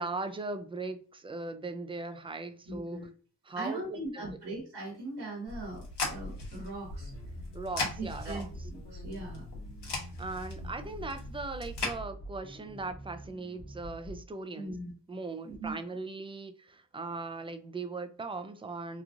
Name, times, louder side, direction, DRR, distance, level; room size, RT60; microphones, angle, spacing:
voice 1, 0.0-3.1 3.4-4.3 7.5-8.5 10.2-14.7 15.1-19.0, right 3 dB, 15° right, 0.4 m, -39 dB
voice 2, 2.7-3.1 3.5-7.1 8.0-9.5 14.5-14.9 15.4-15.8, right 2 dB, 65° right, 1.1 m, -40 dB
sound 1, 5.5-12.0, left 3 dB, 70° left, 1.2 m, -39 dB
sound 2, 6.9-14.3, right 1 dB, 30° left, 0.9 m, -46 dB
3.0 x 2.4 x 2.5 m
supercardioid pair, 45°, 42 cm